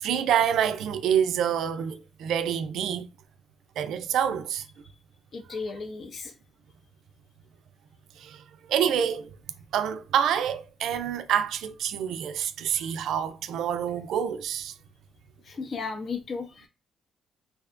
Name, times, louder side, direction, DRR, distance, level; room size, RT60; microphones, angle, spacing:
voice 1, 0.0-3.1 3.8-4.6 8.2-8.4 8.7-9.3 9.7-14.7, right 9 dB, 80° right, 0.3 m, -27 dB
voice 2, 5.3-6.3 15.4-16.7, left 4 dB, 50° left, 0.6 m, -35 dB
2.6 x 2.1 x 2.5 m
cardioid pair, 90°, 0 cm